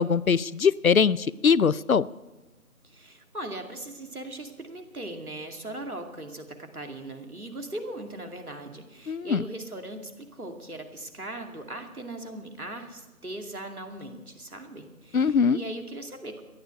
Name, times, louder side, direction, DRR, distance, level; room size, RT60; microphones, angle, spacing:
voice 1, 0.0-2.1 9.1-9.4 15.1-15.6, left 6 dB, 65° left, 19 dB, 0.6 m, -22 dB
voice 2, 2.8-16.4, right 1 dB, 75° right, 4 dB, 2.5 m, -39 dB
14.0 x 11.0 x 7.8 m, 1.1 s
figure-of-eight pair, 180°, 45 cm